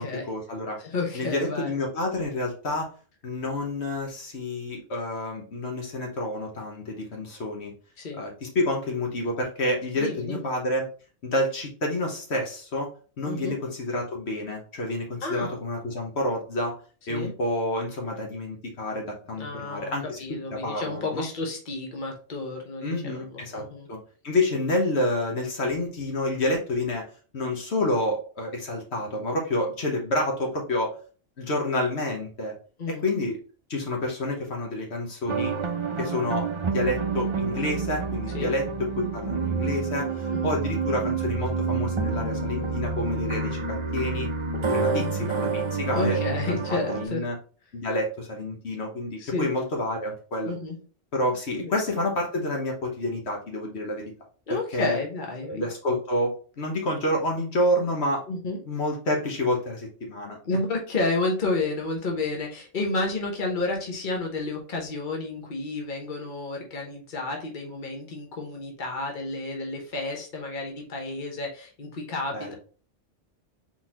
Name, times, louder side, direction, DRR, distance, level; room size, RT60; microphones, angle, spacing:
voice 1, 0.0-0.8 1.1-2.9 3.2-7.7 8.2-10.9 11.2-12.9 13.2-16.7 17.1-20.2 20.5-21.3 22.8-24.0 24.2-30.9 31.4-32.5 32.9-33.4 33.7-35.5 36.0-44.3 44.7-46.2 46.5-47.4 47.7-50.5 51.1-54.0 54.5-55.0 55.5-58.2 58.7-60.4 72.3-72.5, left 1 dB, 65° left, 0 dB, 1.3 m, -29 dB
voice 2, 0.8-1.8 8.0-8.2 10.0-10.5 13.2-13.6 15.2-15.6 17.1-17.3 19.4-19.9 20.2-23.9 32.8-33.0 38.3-38.5 40.3-40.6 44.7-45.3 45.9-47.2 49.2-49.5 50.5-50.8 51.5-51.7 54.5-55.6 58.3-58.6 60.4-72.5, left 2 dB, 45° left, 1 dB, 1.2 m, -31 dB
sound 1, 35.3-47.1, right 4 dB, 40° right, 0.4 m, -28 dB
4.2 x 3.9 x 2.9 m, 0.39 s
omnidirectional pair, 1.2 m